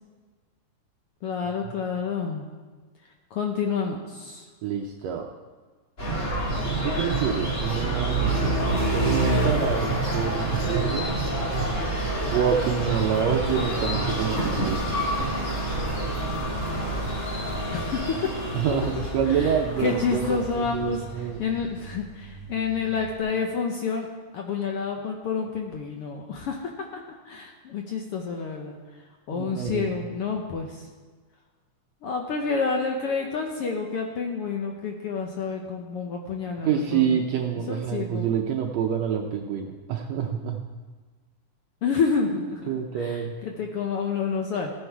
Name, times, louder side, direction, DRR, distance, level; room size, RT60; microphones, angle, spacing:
voice 1, 1.2-2.4 3.3-4.4 17.7-21.0 21.4-24.1 24.3-28.8 29.3-30.9 32.0-37.2 37.7-38.3 41.8-42.7 43.0-44.7, left 5 dB, 70° left, 2 dB, 1.4 m, -29 dB
voice 2, 4.6-5.3 6.8-11.1 12.3-15.0 18.5-21.4 29.3-29.9 36.6-40.6 42.7-43.3, right 8 dB, 75° right, 2 dB, 1.7 m, -27 dB
sound 1, 6.0-21.7, right 2 dB, 25° left, 3.2 m, -27 dB
Truck, 17.2-23.2, right 2 dB, 40° left, 1.8 m, -44 dB
15.0 x 9.8 x 4.6 m, 1.4 s
omnidirectional pair, 3.6 m